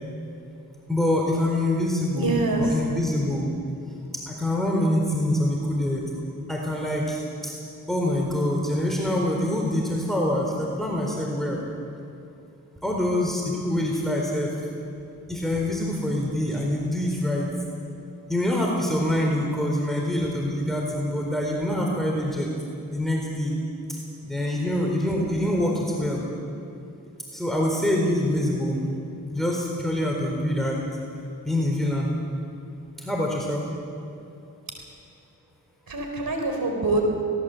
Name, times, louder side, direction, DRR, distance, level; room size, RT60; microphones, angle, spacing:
voice 1, 0.9-3.5 4.1-6.1 6.5-7.5 7.9-11.6 12.8-14.6 15.3-17.5 18.3-22.5 22.9-23.5 23.9-26.2 27.3-28.8 29.3-30.9 31.5-32.1 33.0-33.7, left 1 dB, ahead, -1 dB, 4.1 m, -25 dB
voice 2, 2.1-2.8 35.9-37.2, right 2 dB, 80° right, 2 dB, 4.4 m, -25 dB
20.0 x 18.0 x 7.9 m, 2.7 s
cardioid pair, 40°, 35 cm